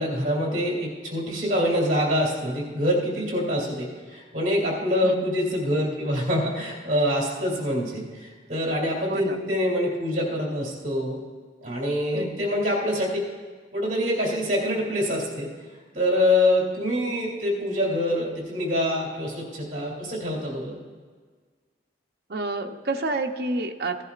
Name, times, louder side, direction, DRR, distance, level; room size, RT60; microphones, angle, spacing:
voice 1, 0.0-11.2 11.6-13.2 13.7-15.5 15.9-20.8, left 1 dB, 45° right, -3 dB, 2.7 m, -25 dB
voice 2, 12.1-12.4 22.3-24.0, right 2 dB, 60° right, 4 dB, 0.7 m, -29 dB
16.0 x 11.0 x 2.5 m, 1.5 s
head